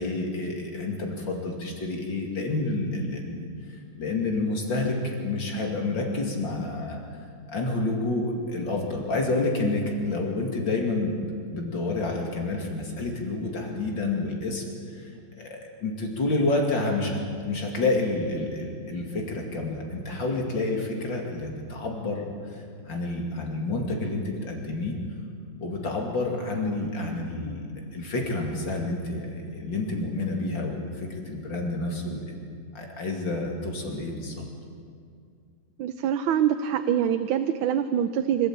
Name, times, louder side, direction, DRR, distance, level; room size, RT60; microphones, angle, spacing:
voice 1, 0.0-3.4 4.0-7.0 7.5-11.2 11.5-15.1 15.4-17.2 17.4-25.0 25.6-27.6 27.9-32.4 32.7-34.4, left 2 dB, 65° left, 1 dB, 3.1 m, -29 dB
voice 2, 35.8-38.5, right 9 dB, 85° right, 8 dB, 1.6 m, -24 dB
25.5 x 13.5 x 8.7 m, 2.3 s
omnidirectional pair, 2.2 m